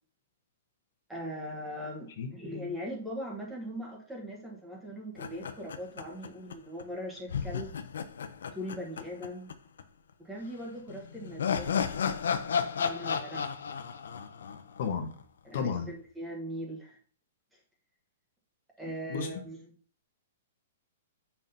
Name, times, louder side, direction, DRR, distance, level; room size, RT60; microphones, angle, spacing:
voice 1, 1.1-7.7 8.5-9.5 10.2-11.9 12.4-13.5 15.4-17.0 18.8-19.6, equal, 5° right, -1 dB, 1.1 m, -40 dB
sound 1, 5.2-6.5 6.8-6.9 7.3-9.5 9.8-9.9 10.9-15.2, left 7 dB, 90° left, 0.6 m, -33 dB
voice 2, 14.8-15.1 15.5-15.9 19.1-19.3, left 6 dB, 50° left, 5 dB, 1.0 m, -32 dB
7.2 x 5.7 x 2.7 m, 0.44 s
hypercardioid pair, 170°, 0 cm